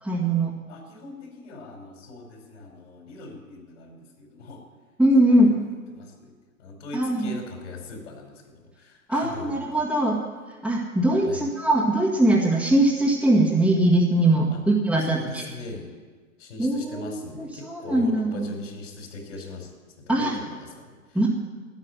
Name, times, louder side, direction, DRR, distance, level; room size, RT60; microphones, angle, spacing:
voice 1, 0.0-0.5 5.0-5.5 6.9-7.3 9.1-10.2 10.6-15.5 16.6-18.5 20.1-20.4 21.1-21.3, right 1 dB, ahead, -7 dB, 1.9 m, -21 dB
voice 2, 0.7-4.6 5.3-5.6 5.9-6.3 6.6-9.8 11.3-11.4 14.5-14.6 15.0-15.9 16.4-19.7 20.0-21.3, left 2 dB, 60° left, 2 dB, 4.9 m, -40 dB
13.5 x 10.5 x 9.5 m, 1.4 s
figure-of-eight pair, 115°, 42 cm